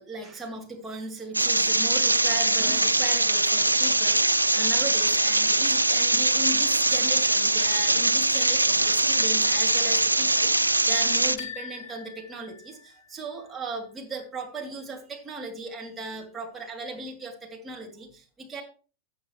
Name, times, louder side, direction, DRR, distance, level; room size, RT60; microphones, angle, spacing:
voice 1, 0.0-18.6, right 2 dB, 15° right, 0 dB, 3.0 m, -37 dB
sound 1, 1.3-11.4, right 2 dB, 85° right, 0.4 m, -22 dB
sound 2, 11.4-13.3, left 7 dB, 45° left, 1.9 m, -42 dB
14.5 x 8.4 x 3.2 m, 0.37 s
figure-of-eight pair, 90°, 0 cm